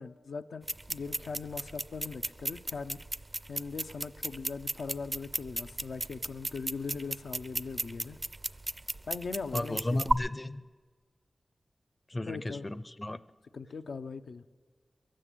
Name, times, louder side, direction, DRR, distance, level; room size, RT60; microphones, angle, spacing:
voice 1, 0.0-3.0 3.5-8.2 9.1-10.0 12.2-12.7 13.5-14.4, left 4 dB, 85° left, 7 dB, 0.5 m, -40 dB
sound 1, 0.6-10.1, right 2 dB, 30° right, 0.4 m, -35 dB
voice 2, 9.5-10.6 12.1-13.2, left 1 dB, 25° left, 14 dB, 0.5 m, -34 dB
22.0 x 7.6 x 8.3 m, 1.5 s
cardioid pair, 60°, 0 cm